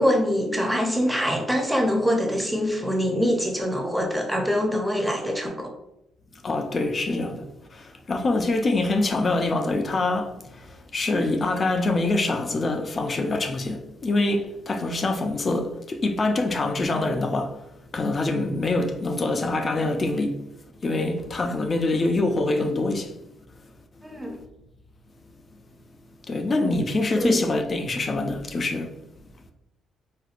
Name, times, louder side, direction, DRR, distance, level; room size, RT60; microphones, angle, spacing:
voice 1, 0.0-5.7 21.5-21.6 24.0-24.4 27.2-27.4, equal, 5° right, 0.7 m, -24 dB
voice 2, 6.4-17.6 17.9-20.4 20.8-23.1 26.3-28.9, left 2 dB, 35° left, 0.4 m, -25 dB
4.2 x 2.2 x 2.5 m
cardioid pair, 90°, 0 cm